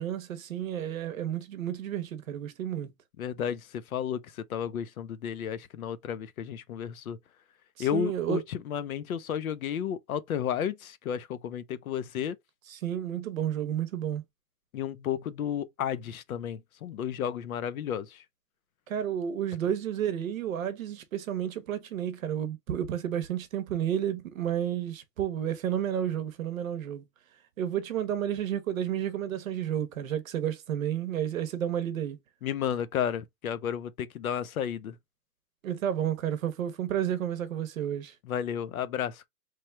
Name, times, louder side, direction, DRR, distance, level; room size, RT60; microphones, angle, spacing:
voice 1, 0.0-2.9 7.8-8.4 12.7-14.2 18.9-27.0 27.6-32.2 35.6-38.1, right 10 dB, 55° right, 0.8 m, -31 dB
voice 2, 3.2-7.2 7.8-12.4 14.7-18.2 32.4-35.0 38.3-39.3, left 9 dB, 60° left, 0.5 m, -32 dB
3.1 x 2.3 x 4.2 m
hypercardioid pair, 180°, 50 cm